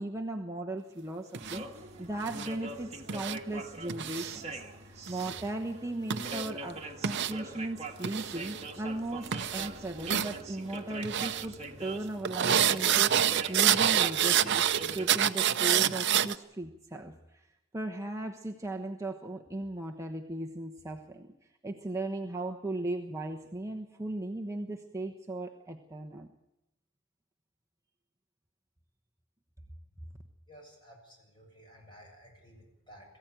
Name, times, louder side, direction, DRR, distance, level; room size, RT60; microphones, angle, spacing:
voice 1, 0.0-17.5 17.7-21.3 21.6-26.3, right 2 dB, 15° right, 1 dB, 1.1 m, -37 dB
sound 1, 1.3-1.6 2.3-2.5 3.1-3.4 3.9-4.4 5.1-5.4 6.1-6.5 7.0-7.3 8.0-8.6 9.2-9.7 10.0-10.3 11.0-11.4 12.2-16.3, right 10 dB, 60° right, 0.7 m, -27 dB
sound 2, 1.4-15.1, right 2 dB, 30° right, 1.9 m, -43 dB
voice 2, 30.5-33.0, equal, 25° left, 0 dB, 7.7 m, -54 dB
22.0 x 15.5 x 9.1 m, 0.92 s
head